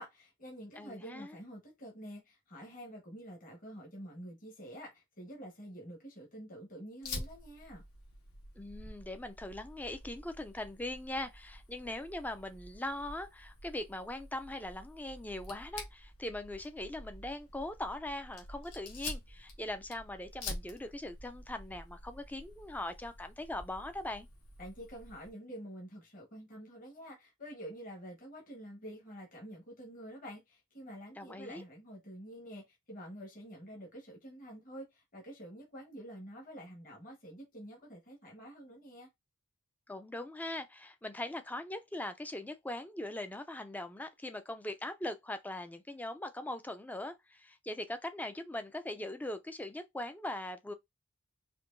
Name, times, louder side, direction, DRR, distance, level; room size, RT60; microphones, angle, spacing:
voice 1, 0.0-7.8 24.6-39.1, equal, 40° left, 1.3 m, -48 dB
voice 2, 0.8-1.4 8.6-24.3 31.2-31.6 39.9-50.7, left 1 dB, 5° left, 0.3 m, -41 dB
Fire, 7.0-25.3, left 2 dB, 75° left, 1.3 m, -48 dB
4.5 x 2.7 x 2.6 m
head